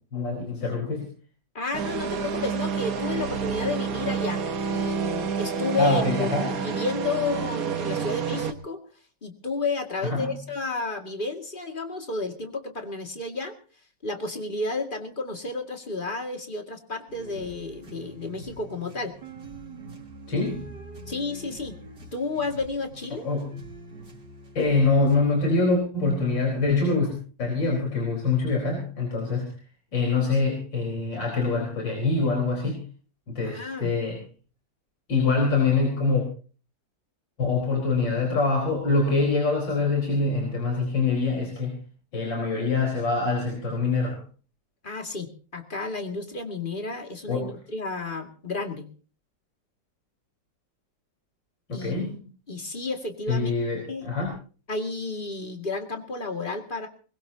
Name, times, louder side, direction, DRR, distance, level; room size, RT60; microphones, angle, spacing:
voice 1, 0.1-1.1 5.8-6.6 10.0-10.3 20.3-20.7 23.1-23.5 24.6-27.1 27.4-29.5 29.9-32.8 33.3-34.2 35.1-36.2 37.4-41.8 42.1-44.2 47.3-47.5 51.7-52.3 53.3-54.3, left 3 dB, 85° left, 0 dB, 5.1 m, -24 dB
voice 2, 1.5-4.4 4.7-8.8 9.2-13.5 14.0-19.2 21.1-21.8 22.1-23.3 33.4-33.9 44.8-48.9 51.7-52.1 52.5-53.5 53.9-54.1 54.7-56.9, left 3 dB, 30° left, 5 dB, 2.3 m, -31 dB
sound 1, 1.7-8.5, right 6 dB, 55° right, 1.5 m, -29 dB
sound 2, 17.1-25.2, right 2 dB, 80° right, 4.0 m, -44 dB
22.0 x 21.0 x 2.8 m, 0.39 s
omnidirectional pair, 1.9 m